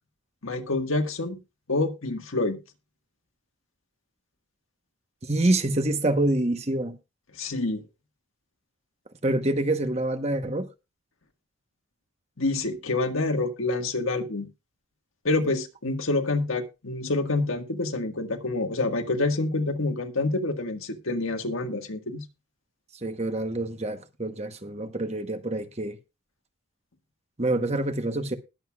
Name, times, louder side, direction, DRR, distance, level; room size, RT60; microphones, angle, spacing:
voice 1, 0.4-1.4 1.7-2.6 7.4-7.8 12.4-14.5 15.2-22.2, left 2 dB, 80° left, 1.7 m, -27 dB
voice 2, 5.3-7.0 9.2-10.7 23.0-26.0 27.4-28.4, right 1 dB, 30° right, 1.0 m, -26 dB
20.5 x 7.8 x 2.4 m
head